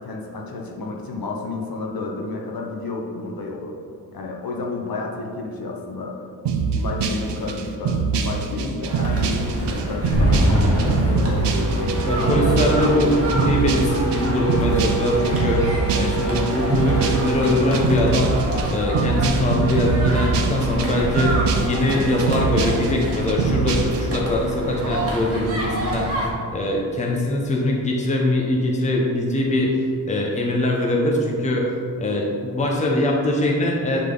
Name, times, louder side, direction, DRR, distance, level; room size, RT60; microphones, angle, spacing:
voice 1, 0.0-3.8 4.1-6.2 6.8-11.2, left 3 dB, 55° left, 0 dB, 1.0 m, -31 dB
sound 1, 6.4-24.2, right 5 dB, 85° right, 0.7 m, -24 dB
sound 2, 8.9-26.3, right 1 dB, 35° right, 1.3 m, -28 dB
sound 3, 10.1-19.5, right 1 dB, 35° left, 1.4 m, -25 dB
voice 2, 12.1-18.3 18.7-26.3 26.5-31.7 32.0-34.0, left 1 dB, 15° left, -1 dB, 0.8 m, -22 dB
9.9 x 3.8 x 3.8 m, 2.3 s
wide cardioid pair, 150°, 41 cm